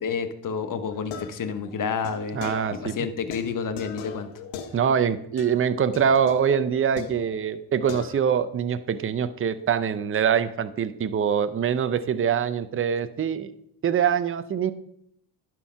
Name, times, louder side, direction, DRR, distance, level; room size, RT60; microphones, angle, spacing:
voice 1, 0.0-2.4 2.7-4.3, left 6 dB, 45° left, 10 dB, 1.1 m, -29 dB
sound 1, 0.9-2.9 3.3-5.1 5.4-5.6 5.9-7.6 7.9-8.5, left 7 dB, 85° left, 1.1 m, -40 dB
voice 2, 2.3-2.9 4.7-13.5 13.8-14.7, right 7 dB, 30° right, 12 dB, 0.6 m, -24 dB
11.0 x 4.6 x 5.7 m, 0.72 s
cardioid pair, 95°, 44 cm